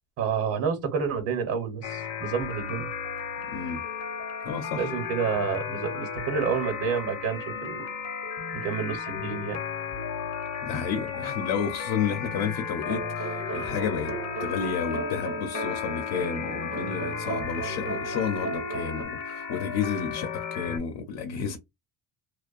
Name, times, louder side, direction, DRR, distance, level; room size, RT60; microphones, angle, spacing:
voice 1, 0.2-2.9 4.7-7.9 8.5-9.6, right 6 dB, 70° right, 0.9 m, -29 dB
sound 1, 1.8-20.8, left 7 dB, 45° left, 0.7 m, -34 dB
voice 2, 3.5-3.8 4.4-4.9 10.6-21.6, left 7 dB, 80° left, 0.7 m, -31 dB
sound 2, 12.8-19.0, right 5 dB, 40° right, 0.6 m, -36 dB
2.5 x 2.2 x 2.4 m
cardioid pair, 120°, 37 cm